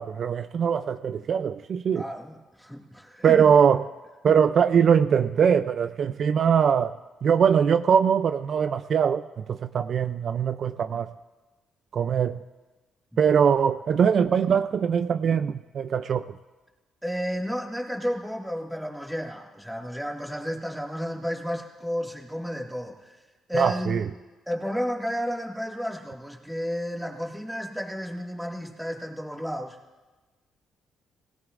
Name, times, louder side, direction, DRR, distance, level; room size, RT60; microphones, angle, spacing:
voice 1, 0.0-2.0 3.2-3.8 4.2-6.9 7.2-11.1 11.9-12.4 13.2-16.2 23.5-24.0, right 7 dB, 55° right, 10 dB, 0.4 m, -22 dB
voice 2, 1.9-3.5 4.2-4.4 13.1-13.3 17.0-23.1 23.5-24.1 24.5-29.8, equal, ahead, 0 dB, 2.0 m, -32 dB
20.5 x 17.0 x 2.5 m, 1.2 s
cardioid pair, 90°, 0 cm